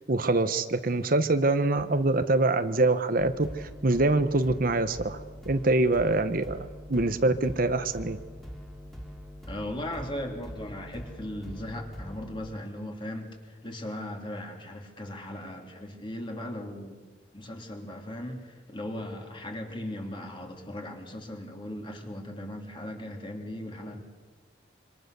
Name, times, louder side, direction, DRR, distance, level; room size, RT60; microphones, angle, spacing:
voice 1, 0.1-5.2 5.4-8.2, right 2 dB, 50° right, 9 dB, 1.0 m, -25 dB
sound 1, 3.2-12.4, equal, ahead, 2.8 m, -43 dB
voice 2, 9.5-17.0 17.3-24.0, left 1 dB, 25° left, 2 dB, 3.3 m, -38 dB
26.5 x 25.5 x 6.8 m, 1.4 s
head